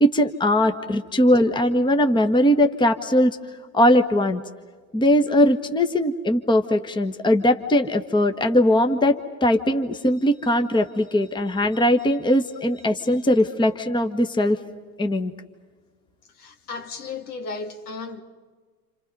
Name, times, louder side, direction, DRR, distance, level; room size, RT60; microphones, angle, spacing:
voice 1, 0.0-3.3 3.7-4.4 4.9-14.6 15.0-15.3, left 1 dB, 10° left, 1.4 m, -20 dB
voice 2, 16.4-18.2, left 4 dB, 70° left, 2.6 m, -34 dB
29.5 x 28.0 x 5.4 m
hypercardioid pair, 90°, 46 cm